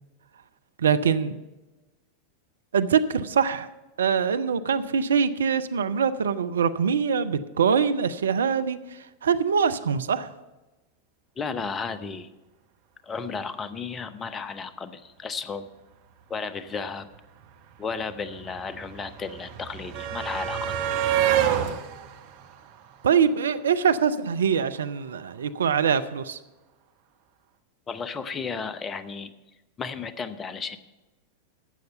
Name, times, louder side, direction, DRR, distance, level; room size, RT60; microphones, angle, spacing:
voice 1, 0.8-1.4 2.7-3.7 4.0-10.3 23.0-26.4, right 7 dB, 65° right, 12 dB, 0.5 m, -23 dB
voice 2, 11.4-12.3 13.0-15.7 16.3-17.1 17.8-20.8 27.9-29.3 29.8-30.8, left 5 dB, 20° left, 13 dB, 0.7 m, -33 dB
sound 1, 17.1-17.2 17.4-23.6 24.8-24.9 25.2-25.3, right 10 dB, 50° right, 1.0 m, -29 dB
12.0 x 7.9 x 5.6 m, 1.1 s
figure-of-eight pair, 90°, 0 cm